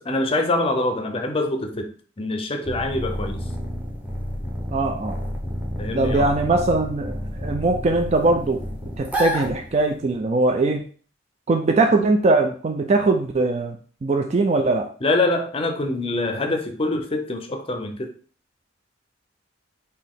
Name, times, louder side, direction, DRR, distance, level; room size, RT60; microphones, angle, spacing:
voice 1, 0.0-1.9 2.2-3.4 5.8-6.3 15.0-18.1, left 2 dB, 30° left, 5 dB, 0.5 m, -24 dB
sound 1, 2.6-10.1, equal, 10° right, 0.7 m, -30 dB
voice 2, 4.7-5.2 5.9-8.6 9.0-10.8 11.5-14.9, right 3 dB, 35° right, 4 dB, 0.3 m, -21 dB
4.1 x 2.7 x 3.6 m, 0.43 s
head